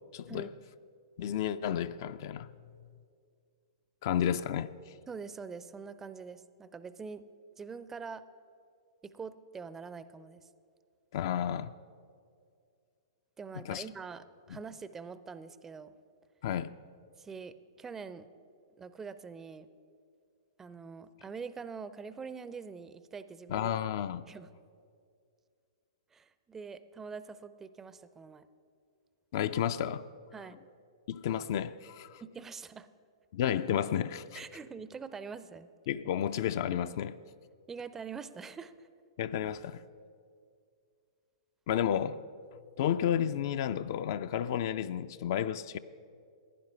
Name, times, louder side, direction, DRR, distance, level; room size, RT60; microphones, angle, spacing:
voice 1, 0.1-0.5 1.2-2.5 4.0-4.7 11.1-11.7 13.6-13.8 16.4-16.7 23.5-24.3 29.3-30.0 31.1-32.2 33.3-34.4 35.9-37.2 39.2-39.8 41.7-42.2 42.8-45.8, left 9 dB, 45° left, 0.4 m, -31 dB
voice 2, 5.1-7.2 7.6-8.2 9.0-10.5 13.4-15.9 17.2-18.3 18.8-19.7 20.6-23.7 24.3-24.5 26.1-28.5 30.3-30.6 32.2-32.9 34.3-35.7 37.7-38.9, right 5 dB, 15° right, 0.4 m, -44 dB
15.5 x 10.5 x 5.6 m
figure-of-eight pair, 110°, 3 cm